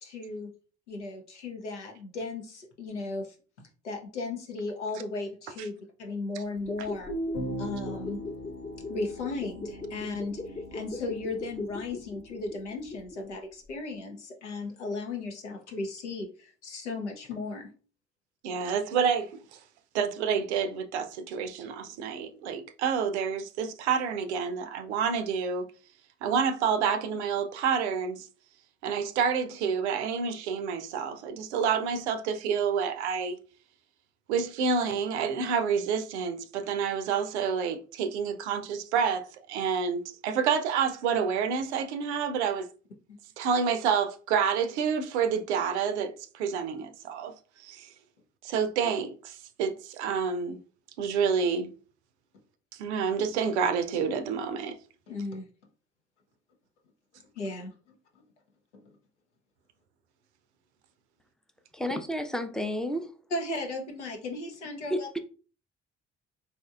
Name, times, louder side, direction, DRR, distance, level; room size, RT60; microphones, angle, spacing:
voice 1, 0.0-0.5 0.9-7.1 7.6-8.2 8.9-17.7 43.1-43.2 55.1-55.5 57.4-58.0 58.8-58.9 63.3-65.2, left 3 dB, 85° left, 0.7 m, -36 dB
sound 1, 6.6-13.4 13.7-13.8, left 2 dB, 20° left, 0.9 m, -40 dB
sound 2, 7.1-12.4, right 1 dB, 55° left, 1.0 m, -39 dB
voice 2, 18.4-19.3 19.9-25.6 26.2-28.3 28.8-33.4 34.3-42.7 43.4-47.3 47.6-47.9 48.4-50.6 51.0-51.7 52.8-54.8, right 6 dB, 75° right, 0.5 m, -28 dB
voice 3, 61.7-63.1 64.9-65.2, equal, ahead, 0.5 m, -31 dB
4.2 x 2.9 x 2.4 m
figure-of-eight pair, 45°, 34 cm